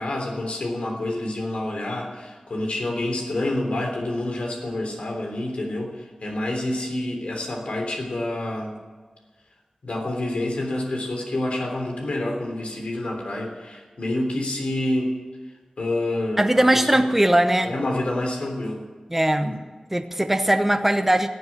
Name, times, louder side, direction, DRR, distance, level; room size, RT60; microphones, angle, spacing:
voice 1, 0.0-8.7 9.8-15.1 15.8-17.1 17.6-18.8 19.4-19.6, left 1 dB, 85° left, 1 dB, 3.4 m, -28 dB
voice 2, 16.4-17.7 19.1-19.5 19.9-21.3, right 1 dB, 15° right, 7 dB, 0.9 m, -20 dB
17.0 x 8.1 x 10.0 m, 1.4 s
wide cardioid pair, 80°, 2 cm